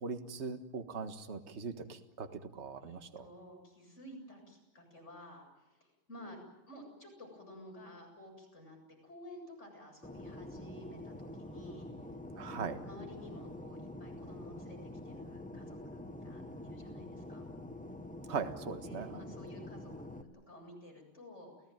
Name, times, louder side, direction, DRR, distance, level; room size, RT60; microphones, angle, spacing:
voice 1, 0.0-3.3 12.4-12.8 18.3-19.2, right 5 dB, 35° right, 8 dB, 1.7 m, -40 dB
voice 2, 2.8-6.4 6.7-8.8 9.0-11.9 12.5-17.4 18.7-21.5, equal, 30° left, 0 dB, 8.2 m, -52 dB
Fixed-wing aircraft airplane, 10.0-20.2, left 1 dB, 5° left, 0.9 m, -46 dB
30.0 x 17.0 x 9.2 m, 0.99 s
omnidirectional pair, 2.3 m